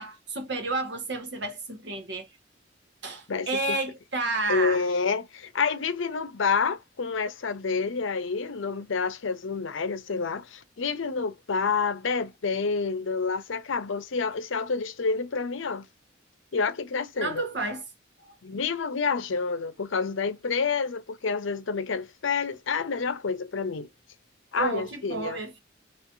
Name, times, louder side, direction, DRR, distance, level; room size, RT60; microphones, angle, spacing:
voice 1, 0.0-2.3 3.0-4.8 17.2-17.8 24.5-25.6, right 3 dB, 65° right, 1.3 m, -31 dB
voice 2, 3.3-3.8 4.5-15.9 16.5-17.4 18.4-23.9 24.5-25.4, left 5 dB, 80° left, 0.6 m, -28 dB
4.4 x 3.1 x 2.5 m
head